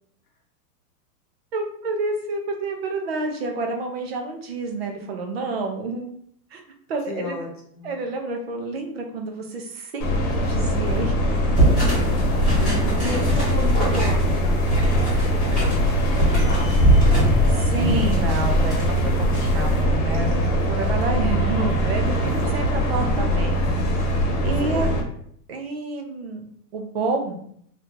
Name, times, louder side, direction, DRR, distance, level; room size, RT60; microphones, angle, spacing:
voice 1, 1.5-6.1 6.5-6.6 6.9-7.4 7.8-11.4 17.5-24.1 24.4-24.9 25.5-26.4 26.7-27.4, right 3 dB, 40° right, 3 dB, 0.4 m, -29 dB
voice 2, 7.1-7.5 7.7-8.0 11.9-16.9 22.1-22.2 22.4-22.5 24.6-25.0, left 3 dB, 30° left, -1 dB, 0.5 m, -34 dB
sound 1, 10.0-25.0, equal, 55° left, 1.0 m, -21 dB
sound 2, 11.6-19.8, right 1 dB, ahead, 1.1 m, -23 dB
2.8 x 2.3 x 3.6 m, 0.66 s
supercardioid pair, 170°, 50 cm